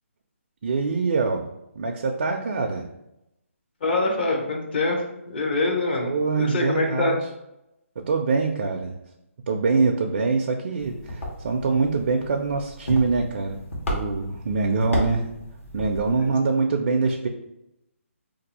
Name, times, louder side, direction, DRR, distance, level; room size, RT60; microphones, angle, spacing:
voice 1, 0.6-2.9 6.0-7.2 8.0-9.0 9.5-13.6 13.9-15.3 15.7-17.3, right 4 dB, 50° right, 3 dB, 0.4 m, -24 dB
voice 2, 3.8-7.1 16.2-16.3, left 2 dB, 45° left, 0 dB, 0.8 m, -25 dB
sound 1, 10.8-16.4, equal, 65° left, 1.2 m, -33 dB
2.6 x 2.3 x 4.1 m, 0.86 s
hypercardioid pair, 160°, 8 cm